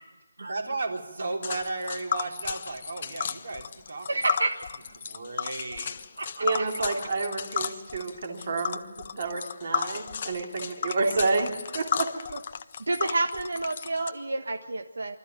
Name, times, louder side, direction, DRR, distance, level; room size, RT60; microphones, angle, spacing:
voice 1, 0.5-4.3 5.0-6.0 11.2-11.5, right 3 dB, 50° right, 2 dB, 3.6 m, -34 dB
Tick, 1.4-14.1, left 7 dB, 25° left, 0.6 m, -34 dB
voice 2, 4.1-4.6 6.2-6.6 12.9-15.2, right 2 dB, 75° right, 5 dB, 1.5 m, -29 dB
voice 3, 6.4-8.8 9.2-11.5 11.7-12.1, right 3 dB, 35° right, 2 dB, 2.7 m, -29 dB
24.5 x 13.5 x 9.1 m, 1.2 s
hypercardioid pair, 180°, 0 cm